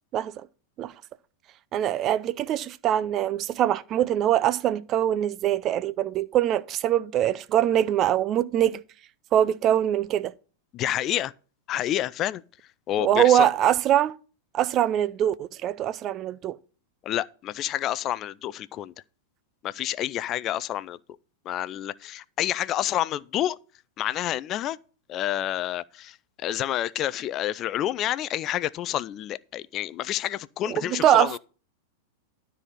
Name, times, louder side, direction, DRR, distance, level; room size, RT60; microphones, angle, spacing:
voice 1, 0.1-0.5 0.8-0.9 1.7-8.8 9.3-10.3 13.0-14.2 14.5-16.6 30.7-31.4, right 11 dB, 35° right, 0.5 m, -23 dB
voice 2, 10.7-11.3 11.7-12.4 12.9-13.5 17.0-18.9 19.6-21.2 21.5-23.6 24.0-24.8 25.1-31.4, left 12 dB, 35° left, 0.4 m, -29 dB
12.5 x 4.2 x 7.4 m
hypercardioid pair, 95°, 0 cm